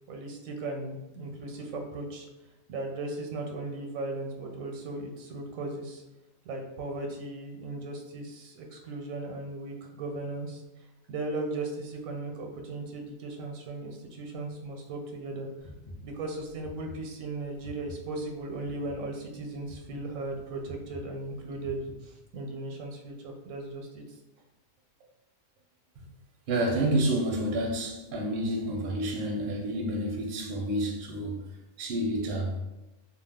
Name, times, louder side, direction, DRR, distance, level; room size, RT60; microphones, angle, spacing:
voice 1, 0.1-2.3 2.7-6.0 6.5-10.6 11.1-15.5 16.0-24.0, right 2 dB, 85° right, 2 dB, 1.0 m, -37 dB
sound 1, 15.6-22.3, left 1 dB, 90° left, 0.3 m, -48 dB
voice 2, 26.5-31.4 31.8-32.6, right 1 dB, 55° right, 0 dB, 0.7 m, -29 dB
2.4 x 2.3 x 3.5 m, 1.0 s
omnidirectional pair, 1.4 m